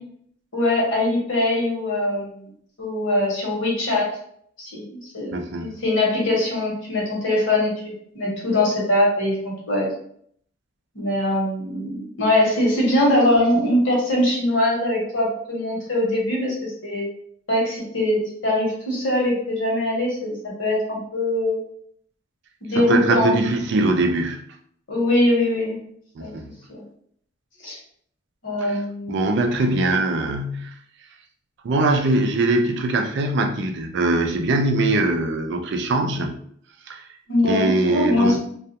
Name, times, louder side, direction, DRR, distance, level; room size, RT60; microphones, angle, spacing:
voice 1, 0.5-2.4 2.8-4.2 4.6-4.8 5.1-9.9 10.9-17.1 17.5-21.6 22.6-23.4 23.7-23.9 24.9-25.8 26.2-26.3 26.7-26.8 27.6-27.8 28.4-29.3 37.3-38.4, left 1 dB, 75° left, -3 dB, 1.1 m, -22 dB
voice 2, 5.3-5.7 22.8-24.4 26.2-26.5 28.6-28.8 29.1-30.7 31.6-36.4 36.9-37.1 37.4-38.4, right 2 dB, 65° right, 4 dB, 0.4 m, -22 dB
2.3 x 2.2 x 2.8 m, 0.64 s
head